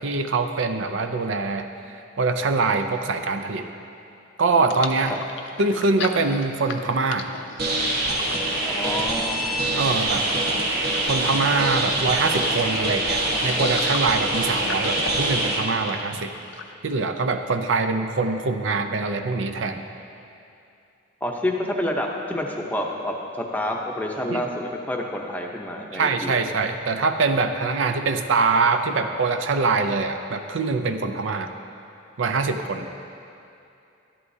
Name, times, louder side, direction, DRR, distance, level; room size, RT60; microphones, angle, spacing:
voice 1, 0.0-1.7 2.2-3.7 4.4-5.1 5.6-7.3 9.8-10.3 11.1-16.3 16.8-19.8 24.3-24.4 25.9-31.5 32.2-32.9, right 4 dB, 70° right, 7 dB, 0.5 m, -23 dB
sound 1, 4.6-16.7, left 5 dB, 65° left, 0.5 m, -37 dB
sound 2, 7.6-15.6, right 1 dB, 50° right, 1.2 m, -24 dB
voice 2, 8.6-9.5 21.2-26.3, left 1 dB, 10° left, 0 dB, 0.7 m, -28 dB
12.0 x 11.5 x 2.7 m, 2.6 s
head